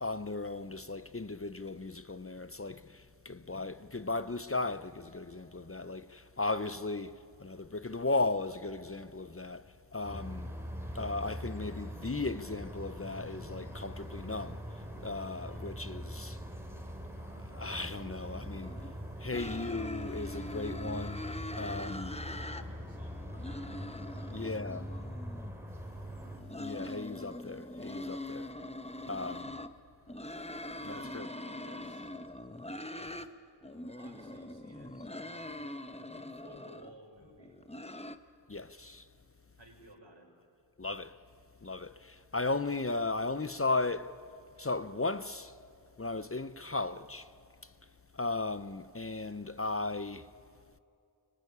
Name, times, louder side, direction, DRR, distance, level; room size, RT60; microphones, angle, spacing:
voice 1, 0.0-9.6 9.9-10.5 10.9-14.6 15.0-16.4 17.5-18.7 19.2-22.1 24.3-24.9 26.6-28.5 29.1-29.5 30.8-31.3 38.5-39.1 40.8-41.2 41.6-44.1 44.6-45.5 46.0-47.3 48.1-50.3, left 3 dB, 30° left, 0.7 m, -36 dB
sound 1, 10.0-26.4, equal, 5° right, 3.4 m, -42 dB
sound 2, 18.6-18.9 19.3-22.6 22.9-25.5 26.2-29.7 30.1-33.3 33.6-36.9 37.4-38.2, left 1 dB, 15° left, 1.0 m, -43 dB
voice 2, 19.2-19.5 22.1-24.7 29.0-29.3 30.8-32.1 32.9-33.3 33.9-37.6 39.6-40.3, right 1 dB, 75° right, 5.0 m, -57 dB
24.5 x 19.5 x 9.9 m
wide cardioid pair, 45°, 44 cm